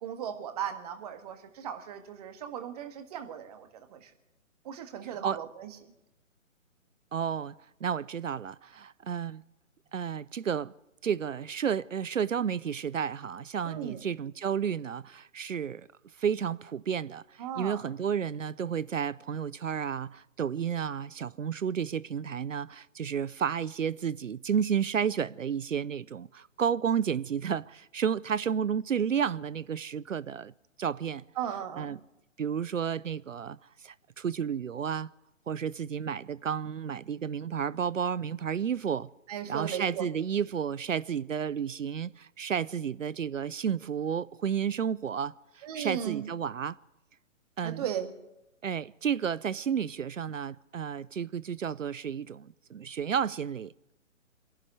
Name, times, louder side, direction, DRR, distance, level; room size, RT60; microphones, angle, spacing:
voice 1, 0.0-4.1 4.6-5.8 13.6-14.0 17.4-17.8 31.4-32.0 39.3-40.1 45.6-46.3 47.6-48.1, right 9 dB, 30° right, 1.7 m, -37 dB
voice 2, 7.1-9.4 9.9-10.7 11.0-15.9 16.2-30.5 30.8-31.2 31.8-32.0 32.4-35.1 35.5-39.1 39.5-46.8 47.6-47.8 48.6-53.7, right 7 dB, 70° right, 0.6 m, -32 dB
25.0 x 11.5 x 9.4 m
figure-of-eight pair, 135°, 40 cm